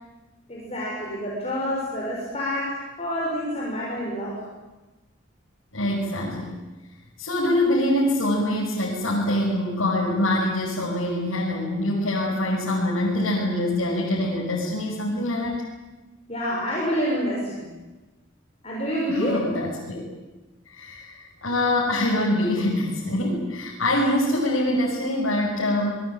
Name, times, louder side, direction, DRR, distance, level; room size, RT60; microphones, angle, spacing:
voice 1, 0.5-4.4 16.3-17.7 18.6-19.4, equal, 30° left, -4 dB, 6.2 m, -27 dB
voice 2, 5.7-6.5 7.2-15.6 19.1-20.0 20.7-25.9, left 1 dB, 80° left, -4 dB, 5.9 m, -24 dB
27.0 x 20.5 x 9.0 m, 1.2 s
head